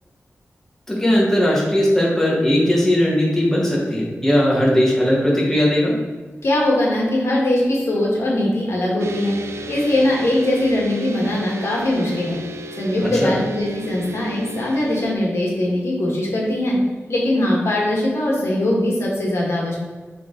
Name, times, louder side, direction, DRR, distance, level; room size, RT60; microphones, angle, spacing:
voice 1, 0.9-5.9 13.0-13.3, equal, 10° left, -4 dB, 1.7 m, -18 dB
voice 2, 6.4-9.4 9.7-12.4 12.8-16.8 17.1-19.8, left 1 dB, 65° left, -3 dB, 1.9 m, -21 dB
sound 1, 9.0-15.1, right 1 dB, 65° right, 0.5 m, -34 dB
7.2 x 4.0 x 4.0 m, 1.4 s
wide cardioid pair, 90°, 5 cm